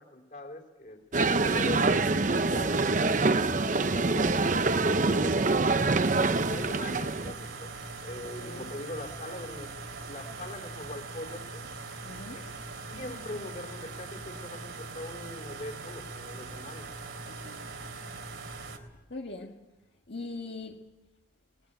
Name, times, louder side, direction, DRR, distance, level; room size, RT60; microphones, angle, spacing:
voice 1, 0.0-5.9 6.5-9.7 10.0-11.7 12.3-12.5 12.8-16.9, left 1 dB, 40° left, 3.7 m, -42 dB
sound 1, 1.1-7.3, right 3 dB, 40° right, 0.7 m, -25 dB
sound 2, 6.0-18.8, right 3 dB, 80° right, 3.2 m, -41 dB
voice 2, 8.2-8.7 12.0-12.5 17.3-17.7 19.1-19.6 20.1-20.9, left 3 dB, 65° left, 1.7 m, -42 dB
23.0 x 19.5 x 8.9 m
head